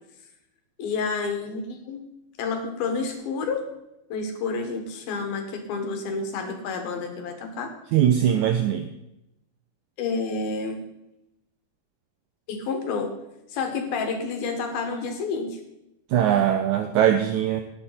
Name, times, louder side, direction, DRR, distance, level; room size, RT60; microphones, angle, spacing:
voice 1, 0.8-2.0 2.4-3.7 4.1-7.7 10.0-10.8 12.5-13.1 13.5-15.6, left 4 dB, 85° left, 5 dB, 3.5 m, -29 dB
voice 2, 7.9-8.9 16.1-17.6, right 10 dB, 80° right, 7 dB, 1.8 m, -21 dB
17.5 x 8.0 x 4.2 m, 0.86 s
omnidirectional pair, 4.1 m